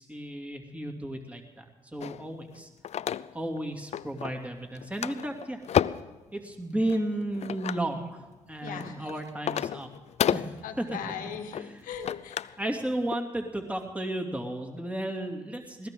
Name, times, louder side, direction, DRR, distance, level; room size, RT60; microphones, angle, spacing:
voice 1, 0.0-1.7 1.9-2.7 3.3-5.6 6.3-9.9 10.3-10.8 11.5-11.8 12.6-15.9, right 1 dB, 10° right, 2 dB, 2.7 m, -33 dB
sound 1, 2.0-3.6 3.9-4.5 4.7-6.2 6.9-7.9 8.5-12.6 12.9-13.2, left 9 dB, 50° left, 0.4 m, -31 dB
voice 2, 8.6-9.1 10.6-12.6, left 7 dB, 75° left, 6 dB, 1.5 m, -39 dB
20.5 x 17.5 x 3.8 m, 1.3 s
hypercardioid pair, 50°, 14 cm